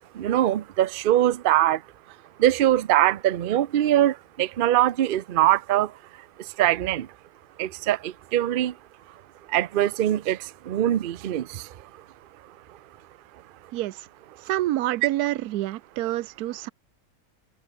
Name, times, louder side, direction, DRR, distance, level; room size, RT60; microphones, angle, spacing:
voice 1, 0.1-1.8 2.4-5.9 6.6-7.1 7.6-8.7 9.5-11.7, right 13 dB, 60° right, 0.5 m, -22 dB
voice 2, 14.5-16.7, right 15 dB, 80° right, 1.1 m, -27 dB
omnidirectional pair, 1.6 m